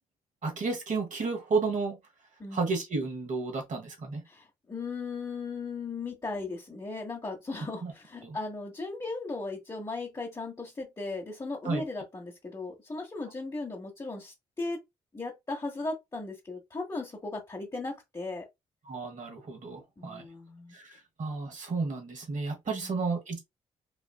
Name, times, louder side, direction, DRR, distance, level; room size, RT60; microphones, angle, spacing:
voice 1, 0.4-2.0 2.5-4.2 7.8-7.9 8.2-8.4 11.6-11.8 18.8-20.2 20.7-23.4, right 4 dB, 55° right, 1.3 m, -32 dB
voice 2, 4.3-14.8 15.1-18.5 20.0-20.7 22.7-23.0, left 3 dB, 25° left, 1.1 m, -37 dB
3.2 x 2.3 x 2.3 m
hypercardioid pair, 45°, 15 cm